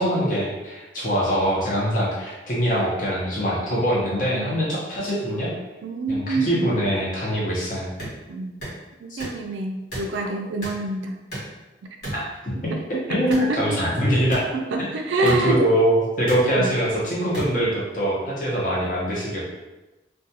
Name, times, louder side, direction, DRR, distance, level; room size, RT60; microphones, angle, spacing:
voice 1, 0.0-5.5 6.1-7.9 9.1-9.2 12.1-12.7 13.1-14.5 14.8-14.9 15.2-19.4, equal, 45° left, -5 dB, 0.7 m, -23 dB
voice 2, 5.8-6.7 8.3-8.6 9.0-11.2 12.7-13.6 14.5-15.6 16.5-16.7, right 2 dB, 85° right, 3 dB, 0.4 m, -27 dB
sound 1, 8.0-8.1 8.6-8.8 9.2-9.4 9.9-10.1 10.6-10.8 11.3-11.6 12.0-12.2 13.3-13.5 14.3-14.4 15.2-15.4 16.3-16.4 17.3-17.5, right 1 dB, 60° left, 1.1 m, -32 dB
2.4 x 2.2 x 2.7 m, 1.1 s
head